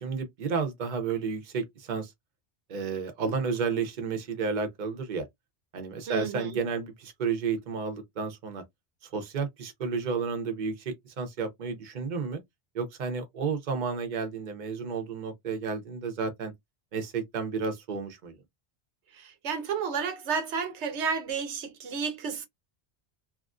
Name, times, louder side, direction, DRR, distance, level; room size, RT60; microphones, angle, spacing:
voice 1, 0.0-2.1 2.7-5.3 5.7-8.6 9.1-12.4 12.7-16.5 16.9-18.3, right 5 dB, 50° right, 0.8 m, -32 dB
voice 2, 6.1-6.5 19.2-22.5, right 6 dB, 85° right, 1.0 m, -31 dB
2.9 x 2.4 x 2.4 m
omnidirectional pair, 1.1 m